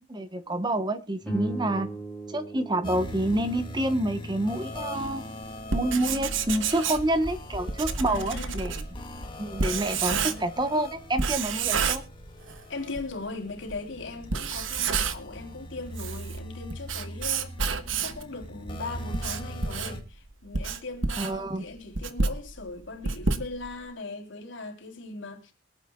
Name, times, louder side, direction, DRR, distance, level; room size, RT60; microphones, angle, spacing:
voice 1, 0.0-1.9 2.3-5.2 5.7-8.8 9.4-12.0 21.2-21.6, right 1 dB, 20° right, 1.0 m, -28 dB
sound 1, 1.2-5.7, right 2 dB, ahead, 5.4 m, -39 dB
sound 2, 2.8-20.0, equal, 25° left, 1.9 m, -41 dB
Writing, 5.6-10.7 11.2-12.6 13.0-13.1 13.7-13.8 14.2-15.4 15.8-18.3 18.8-23.9, right 5 dB, 80° right, 1.2 m, -30 dB
voice 2, 8.1-8.6 10.1-10.5 12.7-17.5 18.0-25.5, left 3 dB, 70° left, 3.3 m, -39 dB
23.5 x 9.1 x 2.3 m
head